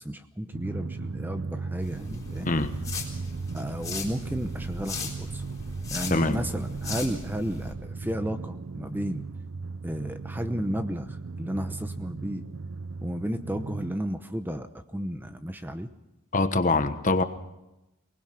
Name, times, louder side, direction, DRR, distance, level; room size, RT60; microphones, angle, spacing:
voice 1, 0.0-2.5 3.5-5.4 5.9-9.2 9.8-12.4 13.0-15.9, equal, 10° right, 9 dB, 0.9 m, -33 dB
Drum, 0.5-14.0, right 4 dB, 85° right, 0.6 m, -37 dB
sound 1, 1.8-7.7, left 4 dB, 20° left, 3.8 m, -39 dB
voice 2, 6.1-6.4 16.3-17.2, left 2 dB, 40° left, 10 dB, 1.2 m, -24 dB
23.0 x 19.5 x 5.9 m, 0.93 s
head